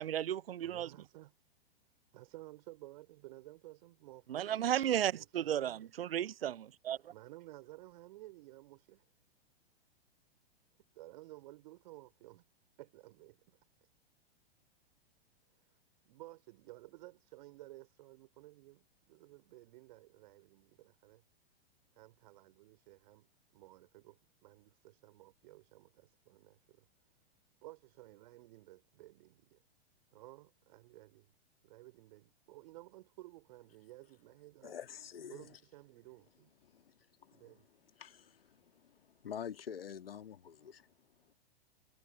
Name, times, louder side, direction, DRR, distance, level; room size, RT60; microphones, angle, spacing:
voice 1, 0.0-0.9 4.3-7.0, right 11 dB, 65° right, 0.5 m, -34 dB
voice 2, 0.6-1.3 2.1-5.9 7.1-9.0 10.9-12.4 12.8-13.4 15.6-15.7 16.0-21.2 21.9-26.9 27.6-29.6 30.1-31.3 31.6-34.8 35.3-36.5 37.3-37.6, right 18 dB, 45° right, 3.5 m, -55 dB
voice 3, 34.6-35.5 36.6-36.9 37.2-37.6 38.0-40.9, left 8 dB, 65° left, 1.9 m, -47 dB
figure-of-eight pair, 105°, 32 cm